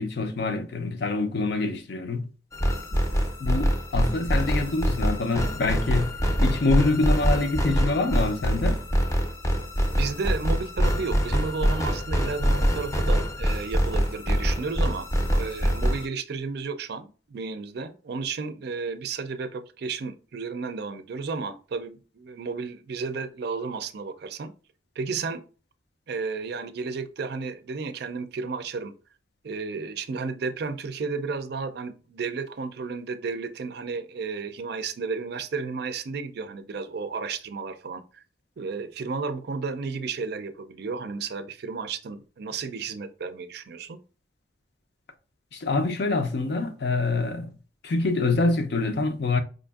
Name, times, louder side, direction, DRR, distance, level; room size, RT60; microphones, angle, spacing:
voice 1, 0.0-2.3 3.4-6.2 6.4-8.8 45.5-47.5 47.8-49.4, left 3 dB, 65° left, 0.5 m, -25 dB
sound 1, 2.5-16.1, equal, 15° left, 0.5 m, -24 dB
voice 2, 10.0-24.5 25.0-25.4 26.1-28.9 29.4-38.2 38.6-44.0, right 4 dB, 60° right, 0.4 m, -33 dB
4.9 x 2.5 x 2.3 m
head